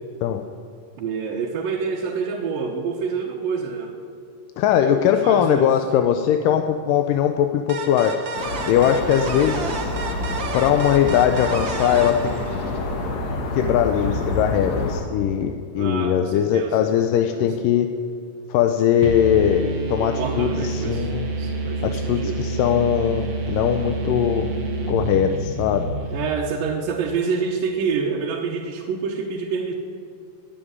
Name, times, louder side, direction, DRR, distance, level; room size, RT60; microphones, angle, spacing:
voice 1, 1.0-3.9 4.8-5.7 15.7-16.8 17.3-17.5 19.9-21.1 21.4-22.4 26.1-29.7, right 5 dB, 80° right, -1 dB, 2.9 m, -27 dB
voice 2, 4.6-8.2 8.7-9.9 10.5-12.3 13.6-17.9 18.5-21.3 21.8-24.5 24.9-25.9, left 9 dB, 80° left, 6 dB, 2.3 m, -20 dB
sound 1, 7.7-13.1, right 4 dB, 65° right, 1.2 m, -31 dB
sound 2, 8.3-15.0, left 2 dB, 55° left, 2.7 m, -28 dB
sound 3, 19.0-26.7, right 2 dB, 45° right, 2.5 m, -28 dB
20.0 x 7.5 x 9.5 m, 2.5 s
omnidirectional pair, 4.0 m